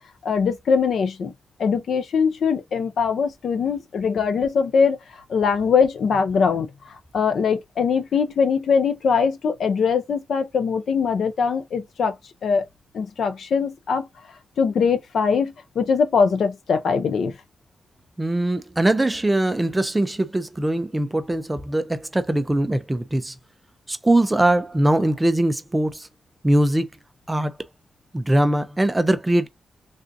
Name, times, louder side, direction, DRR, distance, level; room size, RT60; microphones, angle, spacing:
voice 1, 0.2-1.3 1.6-12.1 12.4-12.7 12.9-14.1 14.6-17.3, left 6 dB, 65° left, 0.5 m, -22 dB
voice 2, 18.2-23.3 23.9-26.1 26.4-26.9 27.3-27.6 28.1-29.5, right 1 dB, 10° right, 0.4 m, -21 dB
3.5 x 2.5 x 2.5 m
wide cardioid pair, 175°, 0 cm